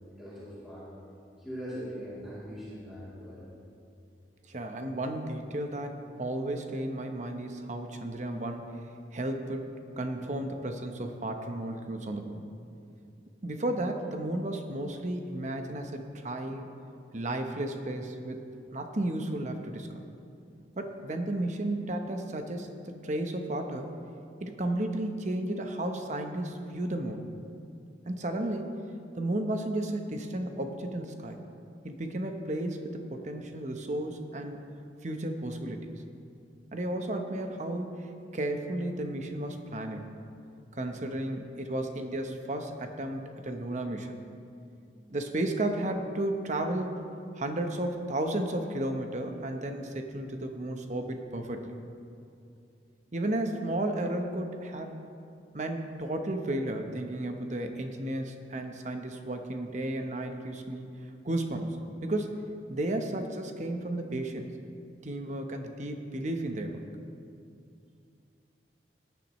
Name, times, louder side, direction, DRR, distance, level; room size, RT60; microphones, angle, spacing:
voice 1, 0.2-0.9 1.4-3.4, equal, 5° right, -12 dB, 3.0 m, -41 dB
voice 2, 4.5-8.8 9.1-9.7 10.0-12.4 13.4-16.7 17.1-18.4 18.7-20.1 20.8-23.9 24.4-27.2 28.1-28.9 29.1-31.4 31.8-34.6 35.0-35.9 36.7-40.1 40.7-44.1 45.0-51.7 53.1-54.9 55.5-60.9 61.2-61.8 62.0-64.5 65.0-66.8, right 1 dB, 45° right, 5 dB, 0.9 m, -33 dB
18.0 x 10.5 x 3.1 m, 2.5 s
head